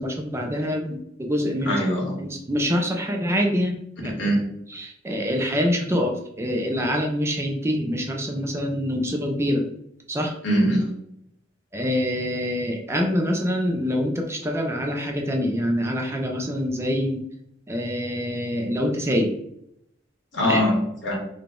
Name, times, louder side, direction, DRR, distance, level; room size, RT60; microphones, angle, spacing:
voice 1, 0.0-1.8 2.2-4.3 4.7-9.7 10.1-10.3 11.7-17.2 17.7-19.4 20.4-20.6, equal, 15° right, 2 dB, 0.4 m, -25 dB
voice 2, 1.6-2.2 4.2-4.4 10.4-10.8 20.3-21.2, equal, 75° left, -2 dB, 1.4 m, -22 dB
3.9 x 2.2 x 3.6 m, 0.75 s
head